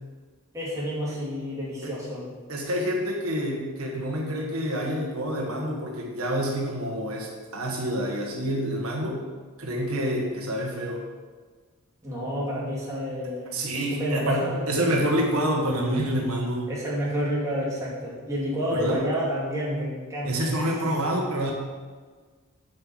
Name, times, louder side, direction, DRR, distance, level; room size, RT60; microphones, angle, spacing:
voice 1, 0.5-2.3 12.0-13.6 13.9-14.6 14.8-15.1 16.7-20.6, equal, 15° right, -7 dB, 2.5 m, -29 dB
voice 2, 2.5-9.2 9.6-11.0 13.5-16.7 18.7-19.0 20.2-21.5, equal, 80° right, -1 dB, 1.5 m, -27 dB
7.7 x 5.5 x 6.3 m, 1.5 s
head